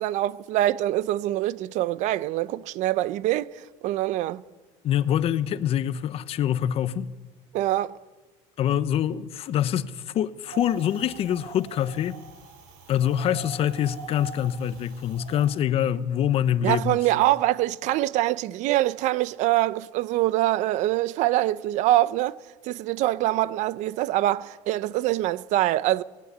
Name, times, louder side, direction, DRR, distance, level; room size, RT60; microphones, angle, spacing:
voice 1, 0.0-4.4 7.5-8.0 16.6-22.4 22.6-26.0, right 15 dB, 60° right, 0.7 m, -24 dB
voice 2, 4.8-7.1 8.6-12.2 12.9-17.0, left 10 dB, 45° left, 0.9 m, -25 dB
Wind, 10.5-15.6, right 4 dB, 80° right, 6.3 m, -43 dB
18.5 x 15.5 x 9.9 m
cardioid pair, 140°, 14 cm